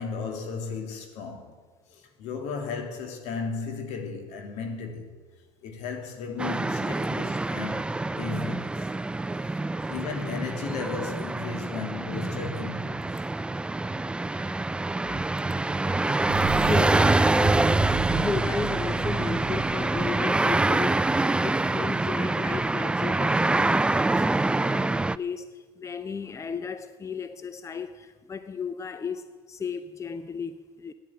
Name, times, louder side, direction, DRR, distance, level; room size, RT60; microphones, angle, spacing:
voice 1, 0.0-1.6 1.9-5.1 5.6-8.9 9.8-13.2, left 5 dB, 70° left, 2.7 m, -35 dB
sound 1, 6.4-25.2, right 2 dB, 10° right, 0.3 m, -25 dB
voice 2, 9.3-9.7 14.3-14.9 15.4-15.7 16.0-30.9, left 5 dB, 25° left, 0.8 m, -35 dB
sound 2, 16.3-21.8, right 14 dB, 70° right, 0.6 m, -37 dB
12.0 x 10.0 x 9.5 m
supercardioid pair, 85°, 12 cm